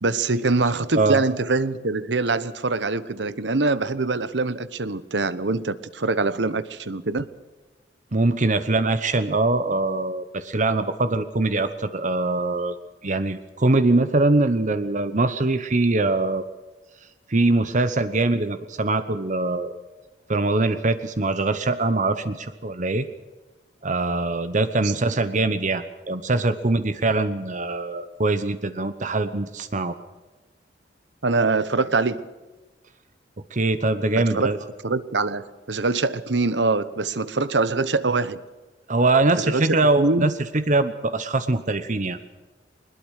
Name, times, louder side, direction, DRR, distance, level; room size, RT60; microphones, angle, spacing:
voice 1, 0.0-7.3 24.8-24.9 31.2-32.2 34.3-34.5 34.8-38.4 39.3-40.3, right 3 dB, 70° right, 15 dB, 1.0 m, -24 dB
voice 2, 8.1-12.7 13.0-16.4 17.3-19.7 20.3-23.1 23.8-29.9 33.5-34.6 38.9-42.2, right 2 dB, 45° right, 11 dB, 1.0 m, -22 dB
22.0 x 20.5 x 6.5 m, 1.2 s
head